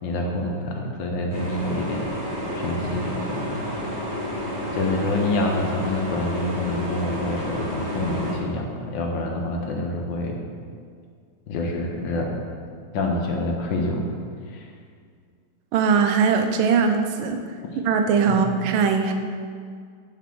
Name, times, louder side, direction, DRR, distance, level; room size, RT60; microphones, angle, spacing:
voice 1, 0.0-2.1 2.5-3.6 4.7-10.4 11.5-12.4 12.9-14.1 14.5-14.6 18.3-18.4, left 2 dB, 70° left, 1 dB, 1.4 m, -27 dB
sound 1, 1.3-8.4, equal, 45° right, 1.0 m, -30 dB
voice 2, 15.7-17.4 17.8-19.1, right 5 dB, 85° right, 6 dB, 1.4 m, -20 dB
5.8 x 4.2 x 6.0 m, 2.1 s
omnidirectional pair, 2.2 m